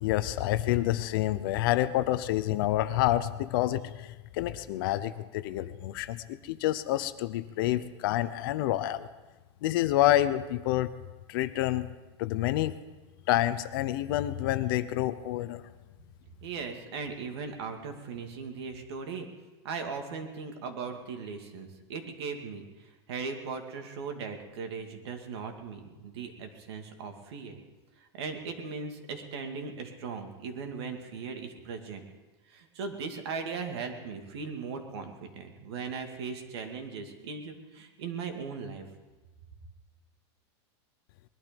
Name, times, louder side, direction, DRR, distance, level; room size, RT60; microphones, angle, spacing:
voice 1, 0.0-9.1 9.6-10.9 11.3-11.9 12.2-12.8 13.3-15.6, left 14 dB, 50° left, 13 dB, 0.7 m, -28 dB
voice 2, 16.4-19.3 19.6-27.6 28.0-32.0 32.5-38.8, right 5 dB, 65° right, 4 dB, 2.4 m, -38 dB
20.5 x 12.0 x 5.3 m, 1.2 s
supercardioid pair, 165°, 15 cm